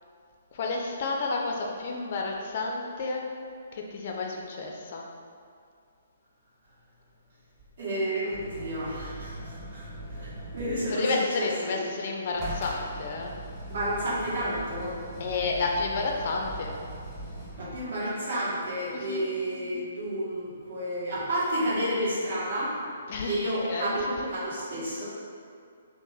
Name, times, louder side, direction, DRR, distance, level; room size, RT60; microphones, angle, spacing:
voice 1, 0.5-3.2 3.7-5.0 10.9-13.3 15.2-16.7 18.9-19.2 23.1-23.4 23.7-24.3, left 3 dB, 45° left, 0 dB, 0.3 m, -31 dB
voice 2, 7.8-11.1 11.4-11.9 13.7-15.0 17.6-22.8 23.2-25.1, right 1 dB, 50° right, -9 dB, 1.2 m, -31 dB
sound 1, 8.3-11.0 12.4-18.0 20.8-20.9, right 1 dB, ahead, 0.7 m, -40 dB
2.9 x 2.0 x 3.9 m, 2.3 s
figure-of-eight pair, 130°, 0 cm